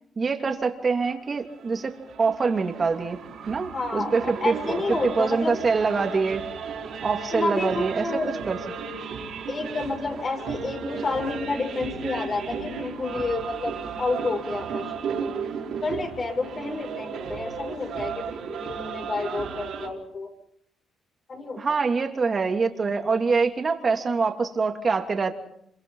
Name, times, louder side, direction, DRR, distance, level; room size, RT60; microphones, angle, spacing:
voice 1, 0.2-3.2 3.5-6.4 7.0-8.2 8.5-8.6 21.6-25.3, right 4 dB, 35° right, 4 dB, 3.0 m, -25 dB
sound 1, 1.2-19.9, right 6 dB, 70° right, 4.8 m, -35 dB
voice 2, 3.7-5.6 7.3-8.3 9.5-15.3 15.8-20.3 21.3-21.8, left 3 dB, 40° left, 3 dB, 6.2 m, -30 dB
26.5 x 24.0 x 5.7 m, 0.73 s
cardioid pair, 90°, 0 cm